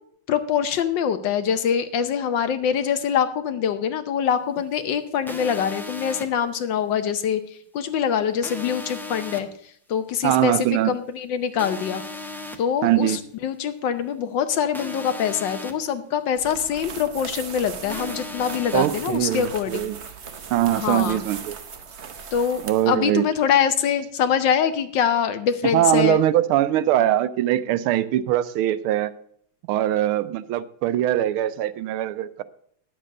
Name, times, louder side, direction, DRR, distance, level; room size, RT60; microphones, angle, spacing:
voice 1, 0.3-7.4 7.7-9.5 9.9-12.0 12.6-19.9 20.7-21.2 22.3-22.6 22.9-26.2, left 8 dB, 65° left, 10 dB, 1.3 m, -24 dB
sound 1, 5.3-6.2 8.4-9.4 11.6-12.6 14.7-15.7 17.9-18.9, left 2 dB, 5° left, 0.3 m, -35 dB
voice 2, 10.2-10.9 12.8-13.2 18.7-20.0 20.5-21.5 22.6-23.3 25.7-29.1 29.7-32.4, right 13 dB, 80° right, 15 dB, 1.5 m, -22 dB
sound 2, 16.3-23.0, right 6 dB, 55° right, 0.7 m, -38 dB
10.5 x 7.6 x 6.5 m, 0.64 s
omnidirectional pair, 2.4 m